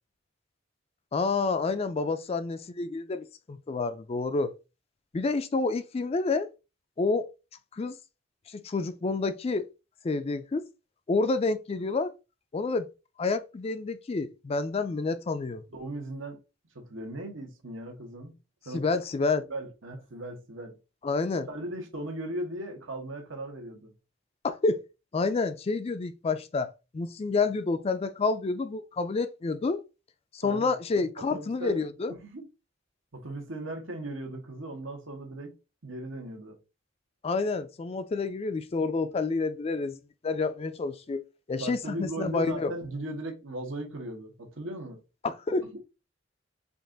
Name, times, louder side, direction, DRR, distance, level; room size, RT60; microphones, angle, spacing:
voice 1, 1.1-4.5 5.1-6.5 7.0-7.3 7.7-8.0 8.5-9.7 10.0-10.6 11.1-12.1 12.5-12.9 13.2-15.6 18.7-19.4 21.0-21.5 24.4-24.8 25.1-29.8 30.3-32.1 37.2-42.7 45.2-45.8, left 3 dB, 30° left, 0.4 m, -29 dB
voice 2, 15.7-16.4 16.7-18.4 18.6-19.0 19.5-20.7 21.5-23.9 30.4-30.7 31.2-32.4 33.1-35.5 35.8-36.6 41.6-45.0 45.6-45.8, right 1 dB, 85° right, 1.3 m, -38 dB
5.2 x 2.5 x 3.8 m
head